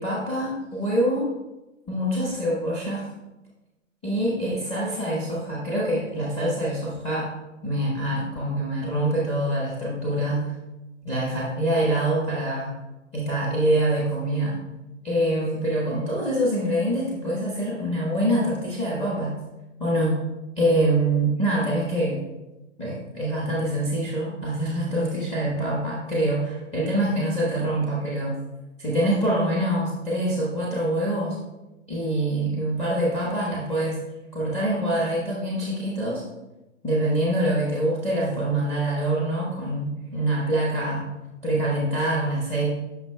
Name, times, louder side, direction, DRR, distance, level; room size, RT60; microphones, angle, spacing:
voice 1, 0.0-1.3 1.9-3.1 4.0-7.3 7.6-10.5 11.0-12.7 13.1-14.6 15.0-19.3 19.8-20.2 20.6-22.2 22.8-28.4 28.8-31.4 31.9-34.0 34.3-36.2 36.8-41.0 41.4-42.7, right 1 dB, 15° left, -5 dB, 1.2 m, -25 dB
8.4 x 5.7 x 2.3 m, 1.0 s
hypercardioid pair, 125°, 37 cm